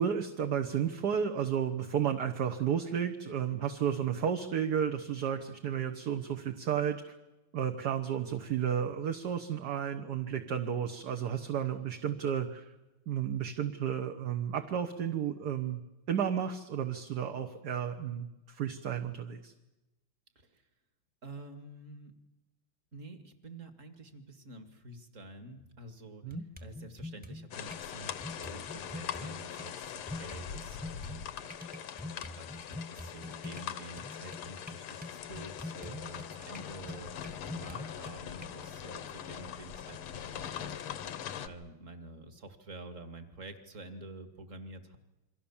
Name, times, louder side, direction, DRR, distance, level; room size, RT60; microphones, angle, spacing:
voice 1, 0.0-7.1 7.5-12.7 13.1-15.8 16.1-19.5 26.2-26.4, right 8 dB, 55° right, 6 dB, 1.5 m, -32 dB
voice 2, 20.4-20.7 21.2-22.1 22.9-31.6 32.0-40.9 41.4-45.0, right 2 dB, 35° right, 8 dB, 2.2 m, -49 dB
sound 1, 25.6-25.7 26.3-27.9 28.2-29.7 30.1-38.5, left 2 dB, 5° right, 1.3 m, -45 dB
sound 2, 27.5-41.5, left 9 dB, 85° left, 2.0 m, -42 dB
28.0 x 23.0 x 7.2 m, 1.0 s
omnidirectional pair, 2.3 m